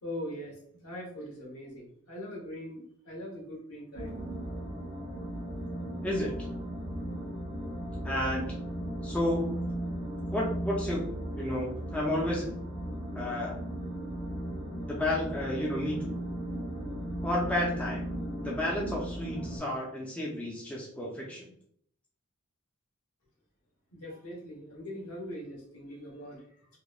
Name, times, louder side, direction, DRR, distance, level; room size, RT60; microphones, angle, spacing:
voice 1, 0.0-4.2 23.9-26.4, equal, 80° left, -2 dB, 1.0 m, -41 dB
sound 1, 3.9-19.6, right 1 dB, 55° left, 1.0 m, -36 dB
voice 2, 6.0-6.3 8.0-8.5 9.0-9.6 10.3-11.0 11.4-12.5 13.1-13.6 14.9-16.2 17.2-18.0 18.4-21.5, left 1 dB, 5° left, -4 dB, 0.3 m, -31 dB
2.9 x 2.0 x 2.3 m, 0.65 s
head